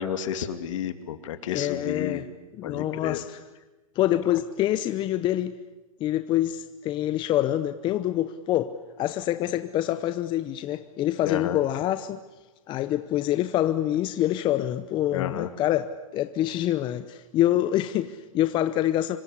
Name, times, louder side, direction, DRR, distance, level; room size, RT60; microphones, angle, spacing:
voice 1, 0.0-2.2 2.6-3.2 11.2-11.6 15.1-15.5, left 9 dB, 60° left, 9 dB, 2.6 m, -31 dB
voice 2, 1.5-2.3 2.6-3.4 3.9-5.6 6.0-12.2 12.7-19.2, left 13 dB, 25° left, 11 dB, 0.8 m, -26 dB
26.0 x 24.5 x 8.6 m, 1.1 s
hypercardioid pair, 130°, 18 cm